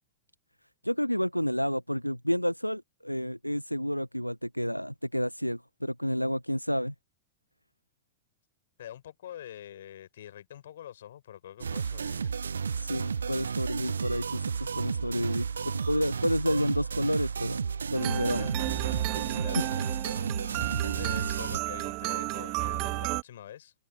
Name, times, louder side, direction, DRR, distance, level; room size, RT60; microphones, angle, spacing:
voice 1, 0.8-6.9 12.7-17.6 17.9-18.5 19.1-19.3 19.5-19.6, equal, 90° left, 1.2 m, -30 dB
voice 2, 8.8-12.3 18.2-18.5 19.0-19.8 20.4-23.7, left 11 dB, 60° left, 6.5 m, -46 dB
sound 1, 11.6-21.6, right 6 dB, 70° right, 0.5 m, -32 dB
sound 2, 18.0-23.2, right 25 dB, 40° right, 2.0 m, -32 dB
figure-of-eight pair, 90°, 0 cm